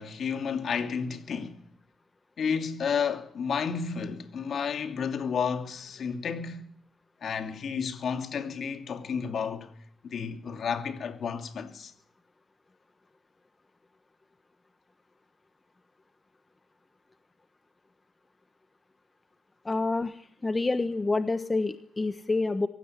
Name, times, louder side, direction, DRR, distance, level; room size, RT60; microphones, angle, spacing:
voice 1, 0.0-1.6 2.4-6.6 7.2-9.7 10.0-11.9, left 6 dB, 55° left, 2.8 m, -31 dB
voice 2, 19.6-20.1 20.4-22.7, left 3 dB, 20° left, 1.2 m, -27 dB
23.5 x 16.5 x 9.8 m
cardioid pair, 90°, 0 cm